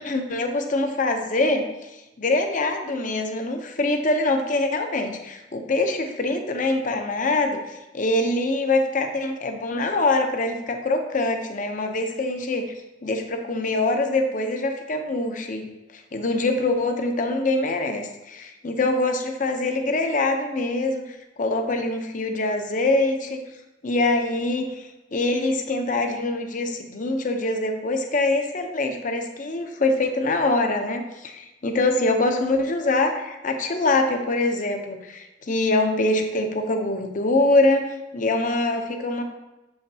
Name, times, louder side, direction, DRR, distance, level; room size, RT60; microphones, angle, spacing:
voice 1, 0.0-12.7 13.0-23.4 23.8-39.2, left 2 dB, 45° left, 5 dB, 0.7 m, -24 dB
7.0 x 5.6 x 2.8 m, 1.0 s
head